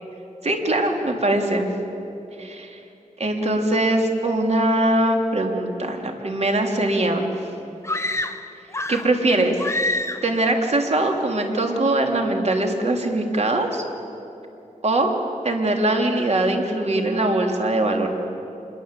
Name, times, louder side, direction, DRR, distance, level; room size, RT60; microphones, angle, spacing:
voice 1, 0.4-1.7 2.4-2.8 3.2-7.3 8.9-9.6 9.8-13.8 14.8-15.1 15.4-18.1, right 1 dB, 50° right, 2 dB, 3.4 m, -22 dB
sound 1, 7.8-9.2 9.6-10.4, left 2 dB, 20° left, 1.1 m, -27 dB
27.0 x 23.0 x 8.4 m, 2.8 s
wide cardioid pair, 80°, 14 cm